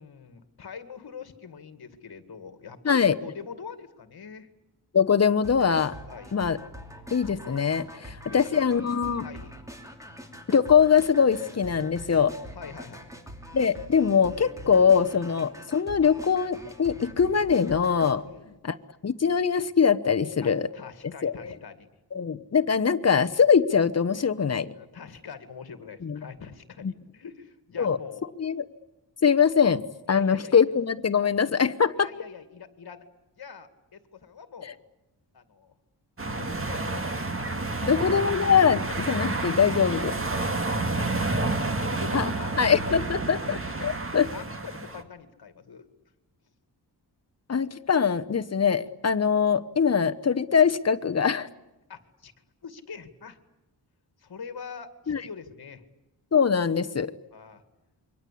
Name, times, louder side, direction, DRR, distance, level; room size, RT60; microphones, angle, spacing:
voice 1, 0.0-4.5 6.1-6.4 7.9-8.6 9.2-9.6 12.5-13.1 18.2-18.6 20.4-21.9 24.7-28.3 30.1-30.6 32.0-33.0 33.4-34.8 35.3-35.7 36.3-38.0 40.4-41.3 41.7-43.4 43.7-43.8 44.2-45.9 51.9-52.3 52.6-53.4 54.2-55.8 57.3-57.6, left 6 dB, 60° left, 10 dB, 2.2 m, -44 dB
voice 2, 4.9-5.9 6.3-6.6 7.1-9.2 10.5-12.3 13.5-18.2 18.6-18.8 19.0-20.7 21.2-21.5 22.1-24.7 26.0-26.2 27.8-28.0 28.4-28.6 29.2-32.1 37.8-40.1 42.1-42.3 42.6-44.3 47.5-51.5 55.1-55.2 56.3-57.1, left 6 dB, 35° left, 9 dB, 1.0 m, -22 dB
sound 1, 5.4-18.1, equal, 5° right, 2.9 m, -44 dB
sound 2, 36.2-45.0, right 2 dB, 30° right, 2.0 m, -30 dB
28.0 x 23.5 x 8.5 m, 1.0 s
wide cardioid pair, 170°, 42 cm